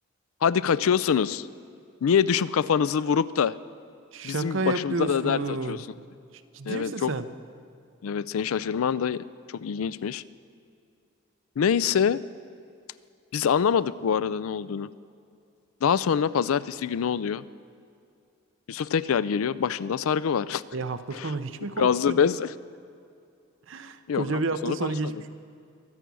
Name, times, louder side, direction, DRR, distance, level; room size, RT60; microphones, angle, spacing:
voice 1, 0.4-1.5 2.0-3.6 4.2-5.8 6.7-7.1 8.0-10.2 11.6-12.2 13.3-14.9 15.8-17.4 18.7-20.6 21.1-21.3 21.8-22.5 24.1-25.2, left 7 dB, 85° left, 18 dB, 0.4 m, -25 dB
voice 2, 4.1-5.8 6.5-7.3 20.7-22.3 23.7-25.3, right 3 dB, 65° right, 10 dB, 0.7 m, -31 dB
23.0 x 8.2 x 6.2 m, 2.4 s
head